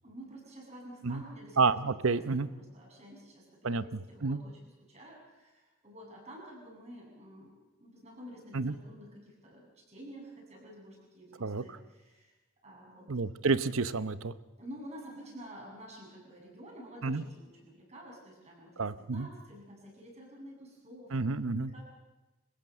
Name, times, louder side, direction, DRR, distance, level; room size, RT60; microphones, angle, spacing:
voice 1, 0.0-4.6 4.9-7.5 7.8-12.3 12.6-13.1 14.6-21.8, equal, 30° right, -1 dB, 7.9 m, -50 dB
voice 2, 1.6-2.5 3.6-3.8 4.2-4.4 8.5-8.7 11.4-11.6 13.1-14.3 17.0-17.2 18.8-19.3 21.1-21.7, right 4 dB, 70° right, 14 dB, 0.9 m, -29 dB
25.5 x 15.5 x 7.8 m, 1.1 s
head